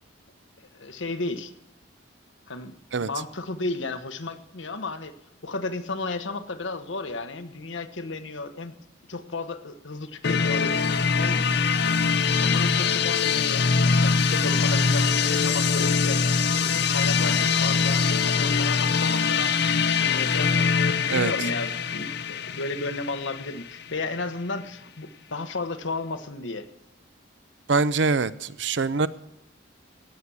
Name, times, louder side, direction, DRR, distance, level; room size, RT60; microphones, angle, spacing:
voice 1, 0.7-1.5 2.5-2.8 3.0-5.1 5.4-8.8 9.1-11.4 12.2-16.3 16.5-26.7, left 3 dB, 75° left, 9 dB, 1.2 m, -33 dB
sound 1, 10.2-24.0, left 5 dB, 60° left, 0.7 m, -23 dB
voice 2, 27.7-29.1, right 4 dB, 65° right, 15 dB, 0.6 m, -23 dB
18.0 x 7.1 x 6.2 m, 0.86 s
head